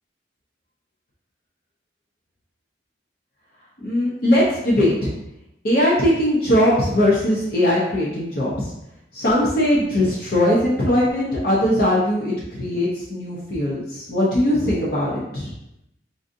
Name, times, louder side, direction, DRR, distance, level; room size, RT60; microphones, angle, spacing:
voice 1, 3.8-5.1 5.6-8.7 9.1-15.5, left 1 dB, 55° left, -5 dB, 0.7 m, -20 dB
4.9 x 2.5 x 2.6 m, 0.85 s
head